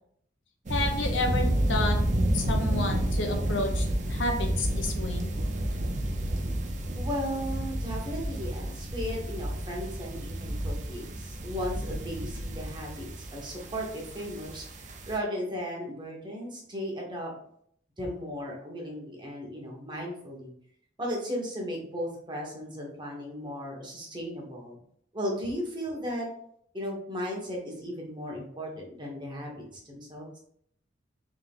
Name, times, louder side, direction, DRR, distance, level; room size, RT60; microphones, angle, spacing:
voice 1, 0.7-2.0 2.3-5.3, left 2 dB, 80° left, 3 dB, 0.8 m, -31 dB
sound 1, 0.7-15.2, right 1 dB, 40° right, 0.6 m, -30 dB
voice 2, 6.9-17.3 18.0-20.5 21.0-24.8 25.1-26.3 26.7-30.4, equal, 25° right, -1 dB, 1.1 m, -36 dB
3.7 x 3.3 x 3.5 m, 0.65 s
head